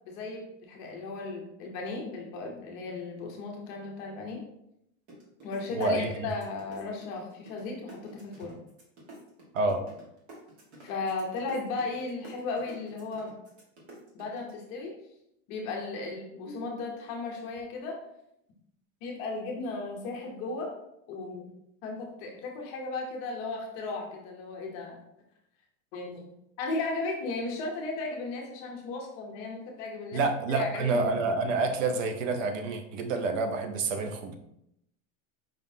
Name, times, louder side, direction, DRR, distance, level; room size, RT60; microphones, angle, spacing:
voice 1, 0.1-4.4 5.4-8.6 10.8-13.3 14.1-14.9 15.5-18.0 19.0-20.7 21.1-21.5 21.8-25.0 25.9-26.3 26.6-31.0, left 3 dB, 30° left, 0 dB, 0.7 m, -35 dB
sound 1, 5.1-7.6 7.9-14.5, right 1 dB, 55° right, 1.6 m, -49 dB
voice 2, 5.7-6.3 9.5-9.8 30.1-34.3, right 3 dB, 75° right, 7 dB, 0.8 m, -28 dB
5.2 x 3.7 x 2.7 m, 0.80 s
supercardioid pair, 180°, 39 cm